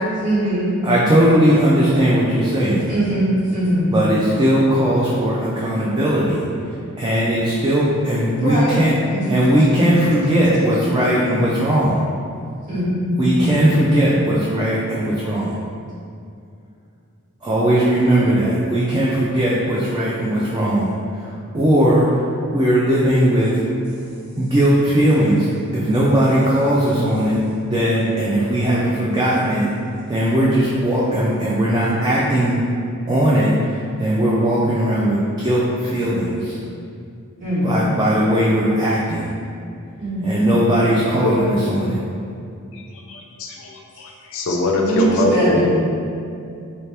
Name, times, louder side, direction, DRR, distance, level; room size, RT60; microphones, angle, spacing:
voice 1, 0.2-0.7 2.9-3.9 8.4-8.7 9.1-9.2 12.7-13.3 37.4-37.7 40.0-40.5 44.8-45.6, right 1 dB, 40° right, -10 dB, 1.3 m, -21 dB
voice 2, 0.8-2.9 3.9-8.9 9.3-12.0 13.2-15.5 17.4-22.2 22.5-23.6 24.4-25.5 25.7-29.7 30.1-32.6 33.1-36.6 37.6-39.3 40.2-42.0, right 1 dB, 20° right, -6 dB, 0.3 m, -18 dB
voice 3, 41.2-41.7 42.7-42.8 43.1-45.6, left 2 dB, 60° left, 0 dB, 0.4 m, -22 dB
3.1 x 2.8 x 3.3 m, 2.4 s
head